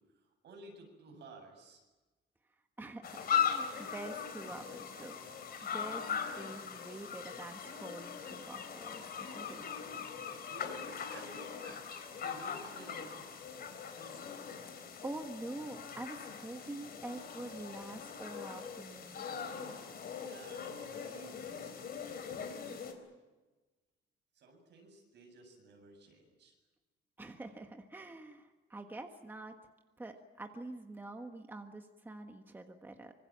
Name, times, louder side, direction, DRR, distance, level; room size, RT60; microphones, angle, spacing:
voice 1, 0.0-1.8 10.2-13.6 20.2-22.2 24.3-26.5, right 2 dB, 55° right, 4 dB, 7.8 m, -55 dB
voice 2, 2.8-5.2 5.6-9.6 14.3-14.7 15.0-19.3 27.2-29.5 30.0-33.1, right 2 dB, 10° right, 4 dB, 1.5 m, -46 dB
sound 1, 3.0-22.9, left 7 dB, 50° left, 3.9 m, -40 dB
26.0 x 25.5 x 7.5 m, 1.2 s
cardioid pair, 180°, 21 cm